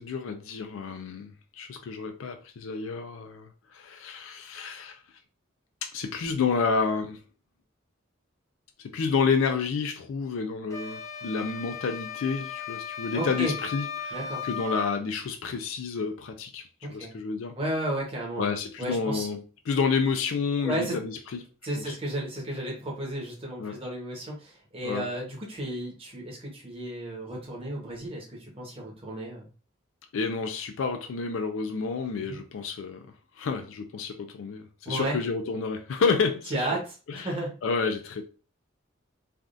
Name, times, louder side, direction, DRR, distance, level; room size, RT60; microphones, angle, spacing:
voice 1, 0.0-5.0 5.8-7.2 8.8-14.2 14.4-17.6 18.4-21.4 21.9-22.0 23.6-23.8 24.8-25.1 30.1-33.1 33.4-36.7 37.1-37.3 37.6-38.2, left 5 dB, 90° left, 0.4 m, -30 dB
sound 1, 10.7-14.9, left 6 dB, 15° left, 0.3 m, -36 dB
voice 2, 13.1-13.5 14.1-14.4 16.8-17.1 17.6-19.3 20.6-21.0 21.6-29.5 32.1-32.4 34.8-35.2 36.5-37.5, right 1 dB, 30° right, 1.0 m, -33 dB
3.4 x 2.4 x 2.5 m
head